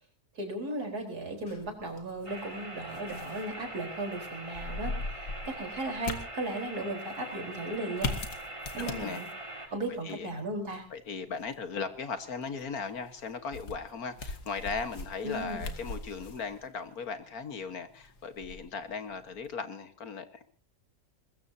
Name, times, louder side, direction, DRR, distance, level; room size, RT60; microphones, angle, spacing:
voice 1, 0.3-8.1 8.8-9.3 9.7-10.8 15.2-15.7, right 2 dB, 75° right, 3 dB, 4.9 m, -36 dB
sound 1, 1.5-19.5, left 3 dB, 90° left, 2.4 m, -42 dB
sound 2, 2.2-9.7, right 1 dB, 20° right, 2.4 m, -42 dB
voice 2, 8.7-9.2 10.0-10.3 10.9-20.5, left 5 dB, 70° left, 9 dB, 1.9 m, -37 dB
22.5 x 21.0 x 2.8 m, 0.37 s
omnidirectional pair, 1.7 m